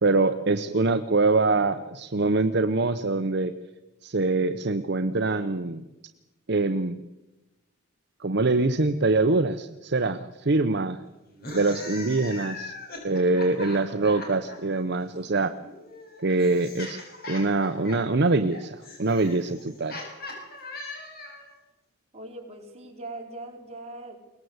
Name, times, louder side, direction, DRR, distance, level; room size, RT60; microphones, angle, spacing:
voice 1, 0.0-3.5 4.0-5.8 6.5-7.0 8.2-11.0 11.5-12.7 13.0-15.5 16.2-17.0 17.3-20.0, right 3 dB, 55° right, 9 dB, 0.8 m, -24 dB
sound 1, 11.3-14.6 15.6-21.5, left 2 dB, 45° left, 6.8 m, -40 dB
voice 2, 15.1-15.6 22.1-24.2, right 2 dB, 30° right, 0 dB, 4.9 m, -41 dB
22.5 x 19.5 x 8.0 m, 1.0 s
head